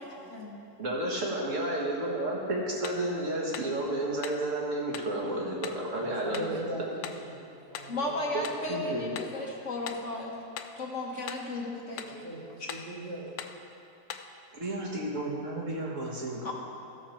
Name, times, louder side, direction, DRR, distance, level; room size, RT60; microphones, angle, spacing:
voice 1, 0.0-0.6 7.9-10.3 10.7-12.3 12.6-12.7 16.4-16.5, left 2 dB, 50° left, -1 dB, 1.3 m, -35 dB
voice 2, 0.8-6.6 8.3-8.4 8.7-9.1 14.5-16.5, right 1 dB, 50° right, -3 dB, 1.9 m, -32 dB
sound 1, 2.8-3.1 3.5-3.8 4.2-4.5 4.9-5.1 5.6-5.9 6.3-6.6 7.0-7.3 7.7-8.0 8.4-8.7 9.1-9.4 9.9-10.1 10.6-10.8 11.3-11.5 12.0-12.2 12.7-12.9 13.4-13.6 14.1-14.3, left 8 dB, 80° left, 1.2 m, -41 dB
voice 3, 6.0-7.4 7.7-8.2 12.0-13.3, right 1 dB, 80° right, -8 dB, 3.4 m, -39 dB
14.5 x 6.6 x 4.4 m, 2.6 s
omnidirectional pair, 1.8 m